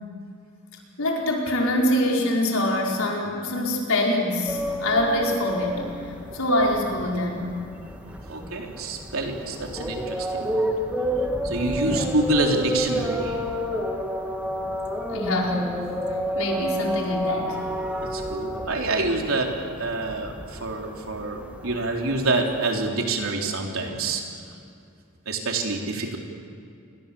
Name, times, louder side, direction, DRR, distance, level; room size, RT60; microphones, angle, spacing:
voice 1, 1.0-5.8 6.3-7.5 11.7-12.1 15.1-15.7 16.3-17.6, left 1 dB, 85° left, -1 dB, 5.0 m, -24 dB
sound 1, 4.5-22.9, equal, 5° right, 2.2 m, -30 dB
voice 2, 8.3-10.8 11.4-13.4 18.0-19.5 19.8-24.2 25.3-26.2, right 2 dB, 80° right, 1 dB, 3.6 m, -27 dB
28.5 x 22.0 x 7.0 m, 2.5 s
head